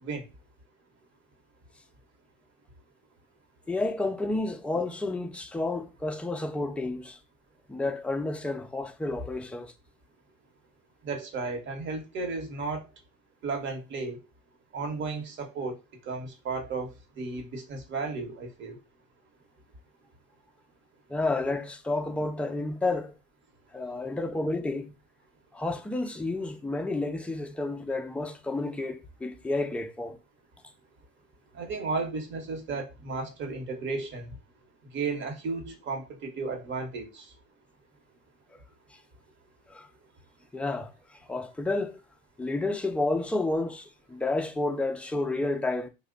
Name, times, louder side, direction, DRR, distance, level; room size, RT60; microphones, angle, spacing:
voice 1, 3.7-7.2 7.7-9.7 21.1-23.1 23.7-24.9 25.5-30.2 39.7-39.9 40.5-42.0 42.4-45.9, left 2 dB, 5° left, 0.4 m, -30 dB
voice 2, 11.0-12.8 13.4-14.2 14.7-15.7 16.1-16.9 17.2-18.8 31.5-34.3 34.9-37.2, right 4 dB, 40° right, 1.1 m, -34 dB
2.9 x 2.2 x 3.7 m
supercardioid pair, 110°, 29 cm